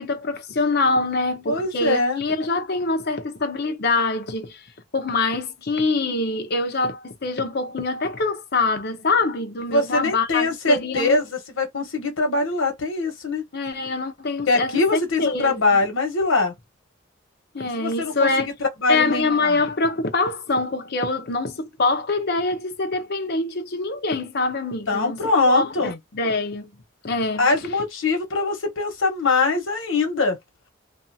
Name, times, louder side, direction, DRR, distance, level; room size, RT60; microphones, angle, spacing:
voice 1, 0.0-4.7 4.9-11.2 13.5-15.6 17.5-18.5 18.9-25.2 25.5-26.7 27.0-27.5, left 3 dB, 55° left, 0.7 m, -24 dB
voice 2, 1.5-2.2 9.7-13.4 14.5-16.5 17.8-19.6 24.9-26.0 27.4-30.4, left 3 dB, 80° left, 1.1 m, -22 dB
2.6 x 2.3 x 2.7 m
head